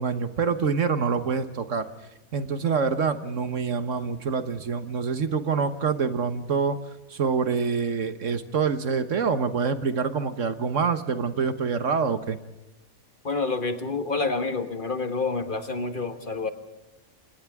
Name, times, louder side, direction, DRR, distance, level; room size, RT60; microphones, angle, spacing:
voice 1, 0.0-1.9 2.3-6.8 7.1-12.4, right 5 dB, 65° right, 10 dB, 1.5 m, -26 dB
voice 2, 13.2-16.5, left 3 dB, 40° left, 8 dB, 1.5 m, -28 dB
28.5 x 27.0 x 3.6 m, 0.98 s
omnidirectional pair, 1.5 m